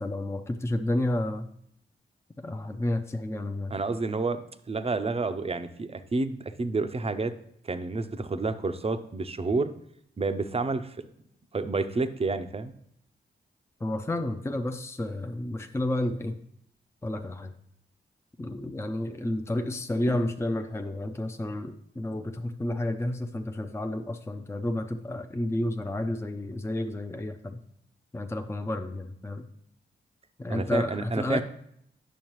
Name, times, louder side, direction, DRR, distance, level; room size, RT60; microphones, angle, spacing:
voice 1, 0.0-1.5 2.4-3.7 13.8-16.4 17.0-17.5 18.4-27.6 28.1-29.5 30.4-31.4, left 1 dB, 15° left, 6 dB, 0.6 m, -31 dB
voice 2, 3.7-7.3 7.6-9.7 10.2-11.0 11.5-12.7 30.5-31.4, right 3 dB, 30° right, 10 dB, 0.6 m, -29 dB
9.1 x 6.3 x 3.1 m, 0.71 s
cardioid pair, 50°, 19 cm